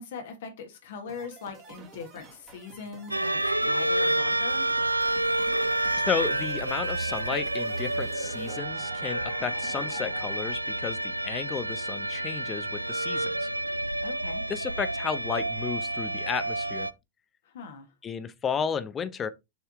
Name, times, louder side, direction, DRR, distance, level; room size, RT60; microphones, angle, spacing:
voice 1, 0.0-4.7 14.0-14.4 17.5-17.9, left 5 dB, 60° left, 1.7 m, -41 dB
sound 1, 1.1-10.5, right 3 dB, 30° right, 2.1 m, -48 dB
sound 2, 3.1-16.9, right 1 dB, 85° right, 0.3 m, -29 dB
voice 2, 6.1-13.5 14.5-16.9 18.0-19.3, left 7 dB, 25° left, 0.7 m, -33 dB
6.7 x 4.4 x 3.6 m
figure-of-eight pair, 90°, 0 cm